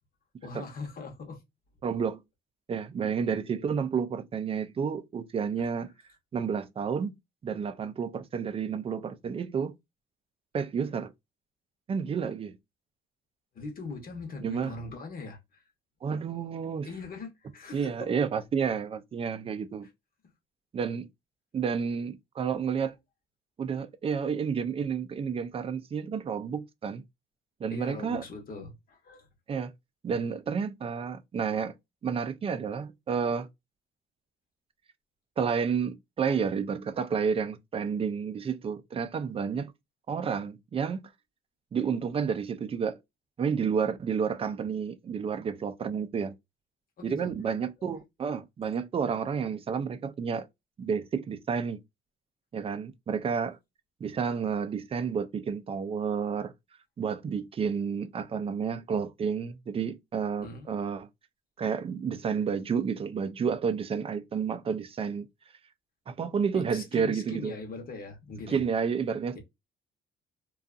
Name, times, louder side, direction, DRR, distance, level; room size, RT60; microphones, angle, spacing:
voice 1, 0.4-1.4 13.5-15.6 16.8-18.1 27.7-29.3 47.0-47.3 60.4-60.7 66.5-68.6 69.3-69.4, left 3 dB, 45° left, 0.9 m, -41 dB
voice 2, 1.8-2.2 2.7-5.9 6.3-7.2 7.4-9.7 10.5-11.1 11.9-12.6 14.4-14.7 16.0-16.9 17.7-19.9 20.7-21.1 21.5-22.9 23.6-27.0 27.6-28.2 29.5-29.7 30.0-31.7 32.0-33.5 35.4-39.7 40.1-41.1 41.7-43.0 43.4-46.3 47.0-50.5 50.8-51.8 52.5-53.6 54.0-56.5 57.0-61.1 61.6-65.3 66.1-67.5 68.5-69.4, right 6 dB, 25° right, 0.4 m, -30 dB
2.5 x 2.3 x 2.4 m
cardioid pair, 120°, 21 cm